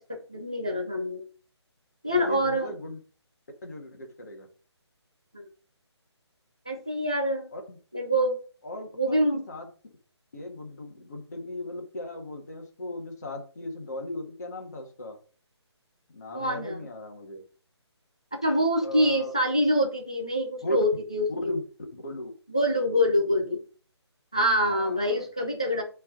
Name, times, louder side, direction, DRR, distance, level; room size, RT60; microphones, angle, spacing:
voice 1, 0.3-1.2 2.0-2.7 5.3-5.5 6.7-7.5 7.9-8.4 9.0-9.4 16.3-16.8 18.4-21.6 22.5-23.6 24.3-25.8, equal, 10° left, 2 dB, 0.4 m, -25 dB
voice 2, 2.1-3.0 3.6-4.5 7.5-7.8 8.6-9.7 10.3-15.2 16.1-17.4 18.8-19.3 20.6-20.8 21.5-21.6 21.9-22.3 24.7-25.3, left 1 dB, 35° left, 2 dB, 1.8 m, -37 dB
9.7 x 3.7 x 3.8 m, 0.39 s
hypercardioid pair, 180°, 15 cm